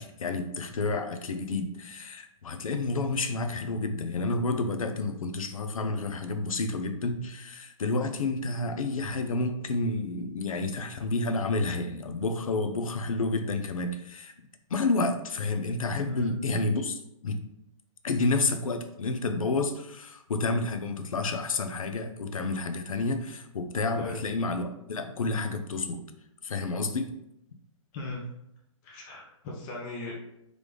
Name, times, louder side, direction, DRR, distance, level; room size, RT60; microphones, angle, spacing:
voice 1, 0.0-14.3 14.7-17.4 18.0-26.0 26.4-27.1, left 3 dB, 85° left, 7 dB, 0.7 m, -30 dB
voice 2, 15.9-16.4 24.0-24.2 27.9-28.2 28.8-30.1, left 3 dB, 20° left, -4 dB, 0.6 m, -37 dB
3.8 x 3.4 x 3.3 m, 0.80 s
hypercardioid pair, 160°, 17 cm